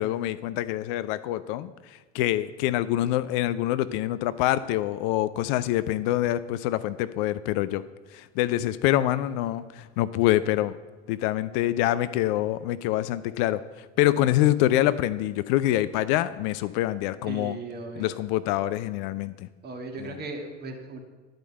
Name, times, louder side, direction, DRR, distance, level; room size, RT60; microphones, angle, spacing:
voice 1, 0.0-1.7 2.1-7.8 8.1-10.8 11.1-13.6 14.0-17.6 18.0-19.5 20.0-20.2, left 14 dB, 45° left, 15 dB, 0.4 m, -25 dB
voice 2, 17.3-18.2 19.6-21.0, right 3 dB, 25° right, 2 dB, 1.7 m, -37 dB
10.5 x 5.1 x 7.9 m, 1.3 s
figure-of-eight pair, 80°, 38 cm